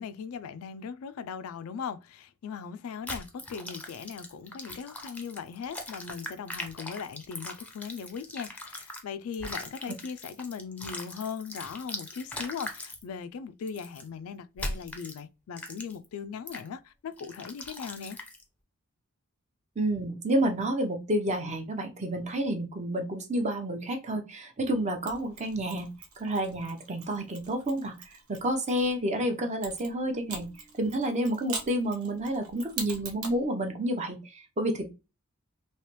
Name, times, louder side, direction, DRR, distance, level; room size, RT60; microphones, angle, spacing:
voice 1, 0.0-18.2, left 6 dB, 75° left, 0.3 m, -39 dB
sound 1, 3.1-9.0 9.3-13.0 13.7-14.0 14.6-15.2 15.6-16.1 16.5-16.7 17.2-18.4, left 1 dB, 5° left, 0.5 m, -40 dB
voice 2, 19.8-25.9 26.2-30.5 30.8-34.9, right 1 dB, 35° right, 0.6 m, -30 dB
Mechanisms, 25.1-28.9 29.6-33.4, right 5 dB, 85° right, 0.8 m, -42 dB
3.2 x 2.9 x 3.0 m
head